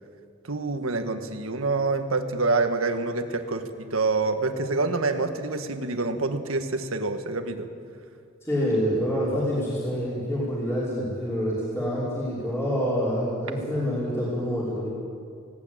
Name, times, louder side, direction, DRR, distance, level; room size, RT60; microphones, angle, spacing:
voice 1, 0.4-7.7, right 3 dB, 80° right, 7 dB, 1.6 m, -26 dB
voice 2, 8.4-14.9, equal, 10° left, -9 dB, 5.3 m, -27 dB
18.5 x 18.0 x 9.0 m, 2.4 s
head